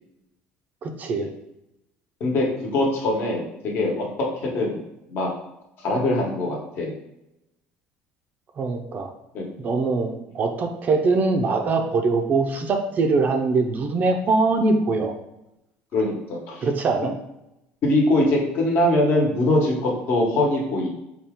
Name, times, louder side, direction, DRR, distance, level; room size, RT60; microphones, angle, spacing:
voice 1, 0.8-1.3 8.6-9.1 9.6-15.1 16.6-17.1, right 3 dB, 35° right, 5 dB, 0.4 m, -22 dB
voice 2, 2.7-4.8 5.1-5.3 5.8-6.9 9.3-9.4 15.9-16.6 17.8-20.9, left 1 dB, 50° left, -1 dB, 1.1 m, -22 dB
4.2 x 2.3 x 3.5 m, 0.86 s
cardioid pair, 145°, 5 cm